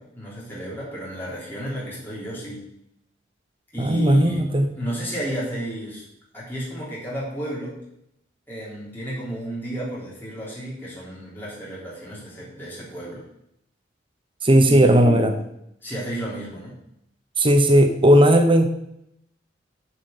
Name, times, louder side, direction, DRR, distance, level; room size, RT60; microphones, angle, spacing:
voice 1, 0.0-2.6 3.7-4.4 4.8-6.0 6.3-7.8 8.5-13.2 14.7-15.3 15.8-16.8, equal, 10° left, -8 dB, 3.5 m, -32 dB
voice 2, 3.8-4.7 14.4-15.3 17.4-18.7, right 1 dB, 30° right, 6 dB, 0.8 m, -16 dB
6.8 x 6.7 x 7.2 m, 0.78 s
head